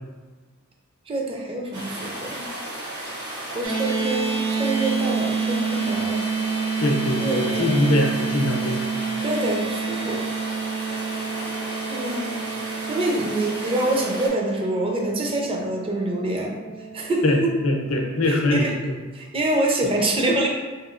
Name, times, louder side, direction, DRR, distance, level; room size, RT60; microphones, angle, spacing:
voice 1, 1.1-2.5 3.5-6.2 7.2-7.9 9.2-10.3 11.9-12.4 12.9-16.5 16.9-17.3 18.3-18.8 19.1-20.5, right 1 dB, 25° right, 0 dB, 0.5 m, -26 dB
sound 1, 1.7-14.3, right 1 dB, 55° right, 1.0 m, -34 dB
sound 2, 3.6-18.0, right 5 dB, 90° right, 1.0 m, -29 dB
voice 2, 6.8-8.8 17.2-17.4 17.6-19.0, left 1 dB, 75° left, 2 dB, 0.6 m, -22 dB
3.5 x 3.0 x 2.4 m, 1.4 s
head